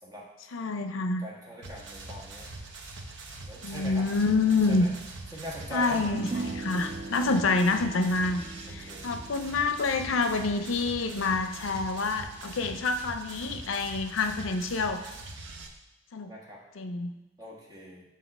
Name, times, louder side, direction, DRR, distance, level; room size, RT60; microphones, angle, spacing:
voice 1, 0.5-1.2 3.6-4.9 5.7-15.0 16.1-16.3 16.8-17.2, left 3 dB, 85° left, 8 dB, 0.5 m, -27 dB
voice 2, 1.2-2.5 3.4-4.1 4.7-4.9 5.3-6.0 7.1-7.7 8.7-9.1 16.3-16.6 17.4-18.0, equal, 20° right, -4 dB, 1.4 m, -42 dB
sound 1, 1.6-15.7, right 2 dB, 65° right, 0.7 m, -43 dB
sound 2, 6.0-12.6, right 3 dB, 40° right, 0.4 m, -41 dB
7.4 x 2.8 x 5.9 m, 1.0 s
head